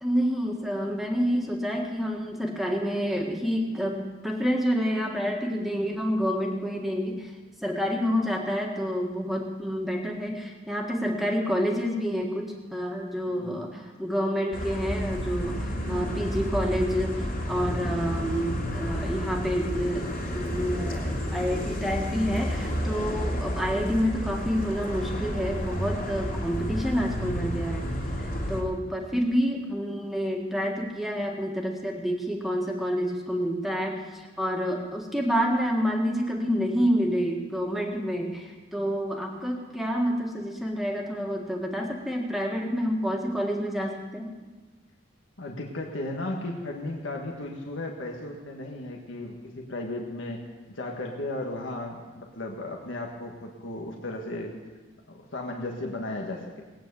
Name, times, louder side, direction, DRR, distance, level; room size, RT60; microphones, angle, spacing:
voice 1, 0.0-7.3 7.6-27.9 28.2-44.3, equal, ahead, 0 dB, 1.7 m, -28 dB
voice 2, 13.3-13.6 45.4-50.4 50.7-54.6 55.1-56.6, left 2 dB, 80° left, 0 dB, 1.6 m, -35 dB
sound 1, 14.5-28.6, equal, 45° left, 2.8 m, -31 dB
19.0 x 9.2 x 6.9 m, 1.3 s
head